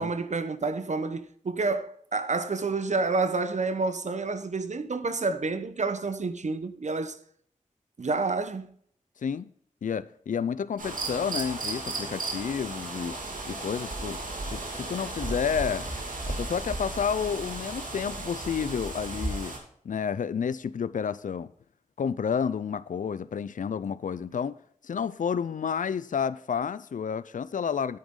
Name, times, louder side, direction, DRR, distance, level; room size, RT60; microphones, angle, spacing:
voice 1, 0.0-7.2 8.0-8.7, right 3 dB, 60° right, 1.0 m, -29 dB
voice 2, 9.8-13.2 13.5-14.2 14.5-15.9 16.3-19.6 19.8-21.5 22.0-24.5 24.8-28.0, left 7 dB, 75° left, 0.4 m, -30 dB
sound 1, 10.8-19.6, right 2 dB, 85° right, 2.5 m, -35 dB
9.5 x 8.7 x 3.7 m
cardioid pair, 50°, 14 cm